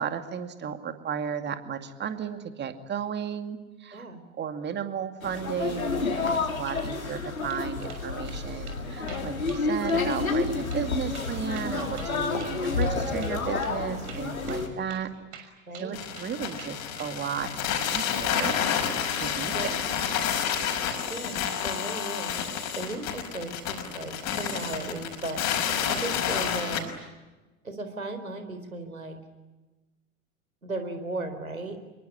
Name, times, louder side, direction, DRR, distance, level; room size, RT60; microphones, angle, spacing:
voice 1, 0.0-4.1 4.4-15.1 15.4-15.5 15.8-17.5 17.8-18.6 19.1-19.5 20.1-20.4, right 7 dB, 25° right, 8 dB, 2.3 m, -34 dB
sound 1, 5.2-14.7, left 3 dB, 80° left, 4.1 m, -29 dB
sound 2, 7.2-7.6 7.9-8.4 8.7-8.8 9.1-9.6 9.9-10.0 10.3-10.4 10.7-10.9 11.1-13.0 13.2-13.4 13.6-13.7 14.1-15.1 15.3-16.3 16.6-17.1, right 8 dB, 50° right, 6.3 m, -46 dB
voice 2, 15.7-16.0 19.5-19.8 21.1-22.5 22.7-26.9 27.6-29.2 30.6-31.8, right 2 dB, 85° right, 8 dB, 4.3 m, -36 dB
sound 3, 15.9-26.8, left 8 dB, 40° left, 5.5 m, -29 dB
26.0 x 23.0 x 10.0 m, 1.2 s
figure-of-eight pair, 85°, 41 cm